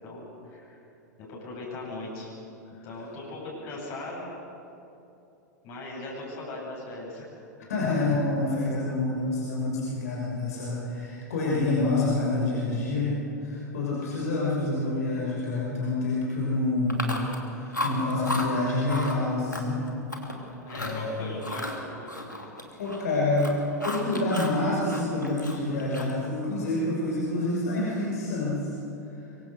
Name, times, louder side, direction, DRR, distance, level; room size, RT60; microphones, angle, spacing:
voice 1, 0.0-0.8 1.2-2.3 2.8-4.3 5.6-7.3 20.6-21.7 21.9-22.2, left 2 dB, 40° left, -4 dB, 8.0 m, -39 dB
voice 2, 7.7-17.0 17.4-19.8 20.7-21.3 22.8-23.5 23.8-28.7, left 2 dB, 60° left, -5 dB, 6.1 m, -27 dB
Chewing mastication, 16.9-17.4 17.7-18.5 18.9-19.2 19.5-20.3 20.7-21.0 21.4-23.1 23.3-24.6 24.9-26.2, left 1 dB, 90° left, 2.8 m, -34 dB
25.0 x 23.5 x 6.6 m, 2.9 s
figure-of-eight pair, 95°, 10 cm